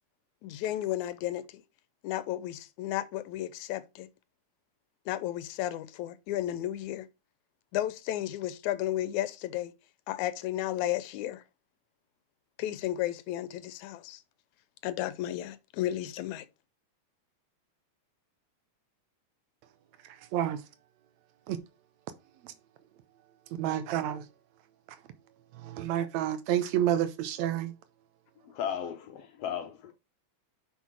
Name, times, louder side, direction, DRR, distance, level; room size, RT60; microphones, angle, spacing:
voice 1, 0.4-1.6 2.0-4.1 5.1-7.1 7.7-9.7 10.1-11.4 12.6-14.2 14.8-16.5, left 13 dB, 85° left, 2.1 m, -33 dB
voice 2, 23.6-24.3 25.6-27.7, right 11 dB, 75° right, 2.1 m, -29 dB
voice 3, 28.5-29.9, left 8 dB, 70° left, 1.7 m, -35 dB
6.1 x 5.6 x 4.7 m
omnidirectional pair, 3.3 m